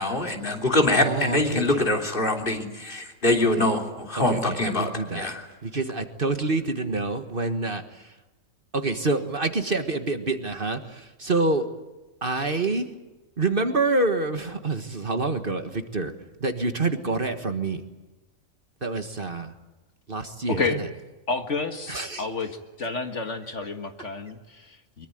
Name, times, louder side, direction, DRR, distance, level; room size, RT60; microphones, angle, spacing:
voice 1, 0.0-5.4, left 2 dB, 40° left, 3 dB, 3.4 m, -24 dB
voice 2, 1.0-1.9 3.5-3.6 4.2-5.3 5.6-8.2 8.7-11.7 12.2-12.9 13.4-16.1 16.4-17.8 18.8-19.5 20.1-20.9 21.9-22.3, right 3 dB, 40° right, 8 dB, 1.7 m, -27 dB
voice 3, 20.5-20.9 21.3-22.5 22.8-25.1, left 4 dB, 60° left, 6 dB, 2.1 m, -30 dB
24.0 x 22.5 x 9.2 m, 1.1 s
omnidirectional pair, 1.4 m